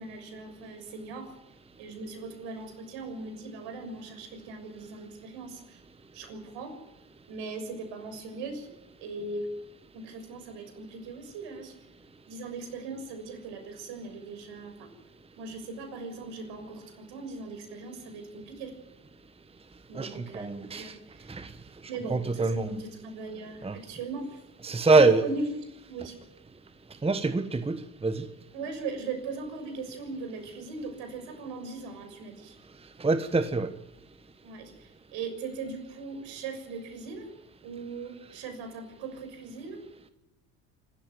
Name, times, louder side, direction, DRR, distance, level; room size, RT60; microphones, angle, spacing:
voice 1, 0.0-1.3 1.8-5.8 6.1-6.8 7.3-8.7 9.0-9.6 9.9-11.7 12.3-14.9 15.4-18.7 19.9-21.4 21.9-24.4 24.9-25.6 25.9-26.2 28.5-32.6 34.4-37.3 37.6-39.8, right 3 dB, 60° right, 6.7 m, -39 dB
voice 2, 19.9-20.9 21.3-21.5 22.1-22.7 23.6-23.8 24.6-25.2 27.0-28.2 33.0-33.7, right 3 dB, 10° right, 1.3 m, -25 dB
26.0 x 14.0 x 9.4 m
hypercardioid pair, 70°, 49 cm